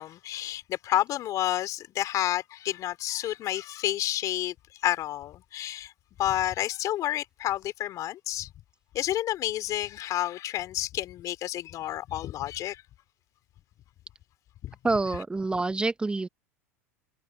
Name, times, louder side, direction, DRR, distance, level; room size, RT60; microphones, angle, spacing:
voice 1, 0.0-4.5 4.8-5.9 6.2-8.5 8.9-12.8 14.6-14.7, left 13 dB, 45° left, 3.4 m, -30 dB
voice 2, 14.8-16.3, right 3 dB, 10° right, 1.1 m, -27 dB
hypercardioid pair, 85°, 8 cm